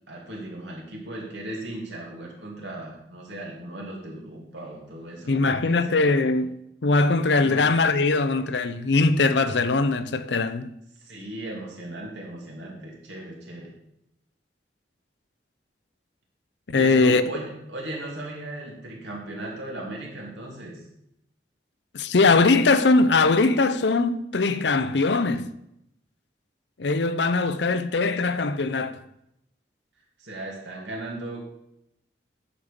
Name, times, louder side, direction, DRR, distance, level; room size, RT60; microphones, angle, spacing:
voice 1, 0.1-6.0 7.4-7.7 11.0-13.7 16.7-20.8 30.2-31.4, right 1 dB, 85° right, 2.9 m, -37 dB
voice 2, 5.3-10.7 16.7-17.2 21.9-25.5 26.8-29.0, left 3 dB, 80° left, 0.7 m, -21 dB
10.0 x 7.4 x 5.1 m
head